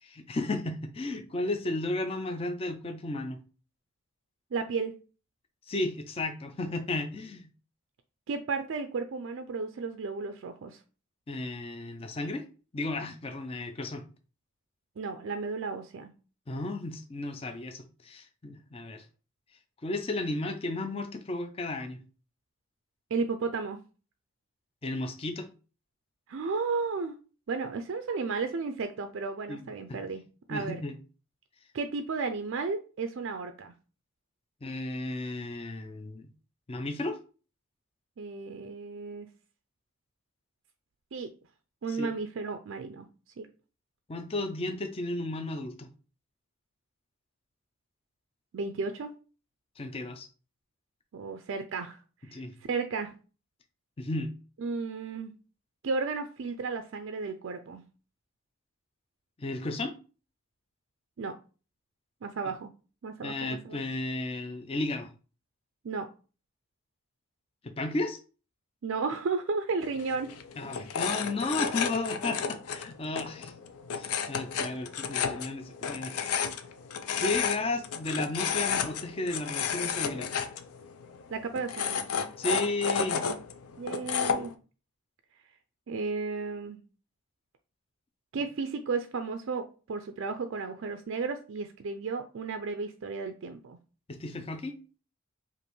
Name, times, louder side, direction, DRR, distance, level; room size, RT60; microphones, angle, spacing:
voice 1, 0.0-3.4 5.7-7.5 11.3-12.4 12.7-14.0 16.5-19.0 19.8-22.0 24.8-25.5 29.5-30.0 30.5-31.0 34.6-36.3 36.7-37.2 41.9-42.1 44.1-45.9 49.8-50.3 52.3-52.5 54.0-54.3 59.4-59.9 63.2-65.1 67.6-68.2 70.6-73.5 73.9-76.5 77.2-80.4 82.4-83.2 94.1-94.8, left 2 dB, 25° left, 0.4 m, -34 dB
voice 2, 4.5-4.9 8.3-10.8 15.0-16.1 23.1-23.8 26.3-27.2 27.5-30.2 30.5-30.8 31.7-33.7 38.2-39.3 41.1-41.3 41.8-43.1 43.4-43.5 48.5-49.1 51.1-52.0 52.3-53.1 54.6-55.3 55.8-57.8 61.2-61.3 62.2-62.7 63.0-63.8 65.8-66.1 68.8-70.3 81.3-82.0 83.8-84.5 85.9-86.8 88.3-93.8, right 4 dB, 60° right, 0.4 m, -33 dB
sound 1, 69.8-84.5, left 6 dB, 80° left, 0.5 m, -32 dB
5.1 x 2.5 x 3.1 m
head